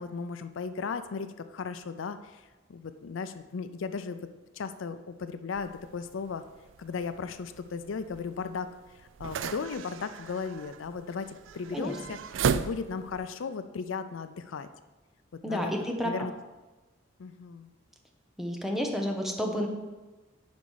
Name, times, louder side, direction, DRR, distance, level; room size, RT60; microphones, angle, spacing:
voice 1, 0.0-2.4 2.7-4.2 4.5-6.4 6.8-8.7 9.2-12.2 12.5-14.7 15.4-15.7 16.0-16.3 17.2-17.7, left 5 dB, 80° left, 10 dB, 0.4 m, -36 dB
sound 1, 5.5-13.3, right 6 dB, 70° right, 0.3 m, -36 dB
voice 2, 15.4-16.3 18.4-19.7, equal, ahead, 2 dB, 0.9 m, -30 dB
9.5 x 5.2 x 4.7 m, 1.2 s
head